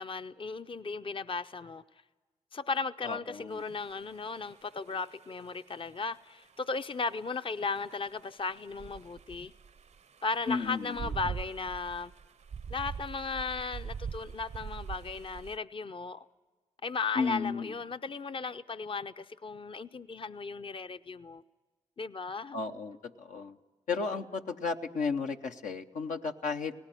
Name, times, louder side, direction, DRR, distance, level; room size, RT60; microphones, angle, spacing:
voice 1, 0.0-1.8 2.5-9.5 10.2-12.1 12.7-16.2 16.8-21.4 22.0-22.6, left 4 dB, 45° left, 0.6 m, -36 dB
voice 2, 3.0-3.6 10.5-11.1 17.2-17.7 22.5-23.6 23.9-26.7, left 5 dB, 85° left, 0.8 m, -34 dB
sound 1, 3.5-5.9 6.4-15.6, right 6 dB, 60° right, 0.5 m, -43 dB
18.5 x 17.5 x 9.1 m
supercardioid pair, 45°, 13 cm